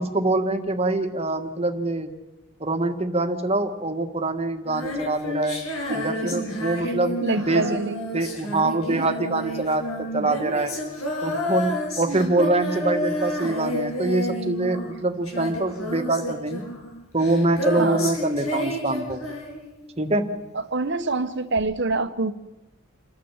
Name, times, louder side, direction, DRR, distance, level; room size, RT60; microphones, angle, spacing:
voice 1, 0.0-2.1 2.6-5.6 5.9-7.2 7.5-7.6 8.1-10.7 11.2-16.6 17.1-19.2 20.0-20.2, right 2 dB, 30° right, 6 dB, 1.6 m, -24 dB
Female singing, 4.7-20.0 21.6-21.7, left 1 dB, 80° left, 7.3 m, -30 dB
voice 2, 5.8-6.5 6.8-6.9 7.2-8.0 8.9-9.1 12.1-12.3 17.8-18.0 20.5-22.3, right 3 dB, 55° right, 10 dB, 1.2 m, -27 dB
28.5 x 12.5 x 7.4 m, 1.0 s
head